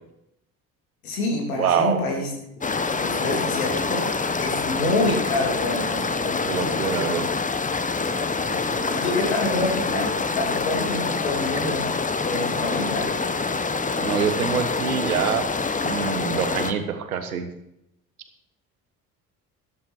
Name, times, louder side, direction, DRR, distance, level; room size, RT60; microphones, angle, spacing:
voice 1, 1.0-2.3 2.7-4.1 4.4-7.0 8.3-13.1, left 2 dB, 80° left, 0 dB, 3.4 m, -28 dB
voice 2, 1.6-2.0 6.5-7.3 14.0-15.5 15.8-17.5, right 7 dB, 80° right, 9 dB, 1.4 m, -25 dB
sound 1, 2.6-16.7, left 4 dB, 20° left, 1.1 m, -26 dB
13.0 x 13.0 x 4.5 m, 0.81 s
figure-of-eight pair, 50°, 43 cm